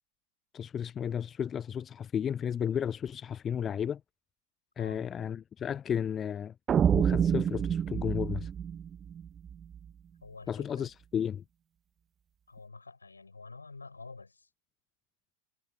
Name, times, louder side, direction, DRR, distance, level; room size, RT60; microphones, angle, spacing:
voice 1, 0.5-4.0 4.8-6.5 6.9-8.5 10.5-11.4, left 8 dB, 25° left, 0.6 m, -33 dB
sound 1, 6.7-9.8, right 8 dB, 25° right, 1.1 m, -28 dB
voice 2, 10.2-10.9 12.5-14.5, left 3 dB, 80° left, 8.0 m, -48 dB
figure-of-eight pair, 90°, 0 cm